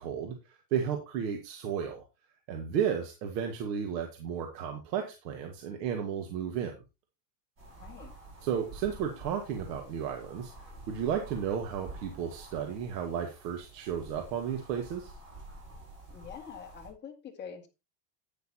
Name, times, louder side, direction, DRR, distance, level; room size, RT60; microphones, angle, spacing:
voice 1, 0.0-2.0 2.5-6.7 8.4-15.1, right 8 dB, 85° right, 1.9 m, -33 dB
sound 1, 7.6-16.9, right 2 dB, 25° right, 5.6 m, -49 dB
voice 2, 7.8-8.1 16.1-17.7, left 7 dB, 20° left, 2.2 m, -45 dB
10.5 x 9.5 x 3.0 m
supercardioid pair, 160°, 48 cm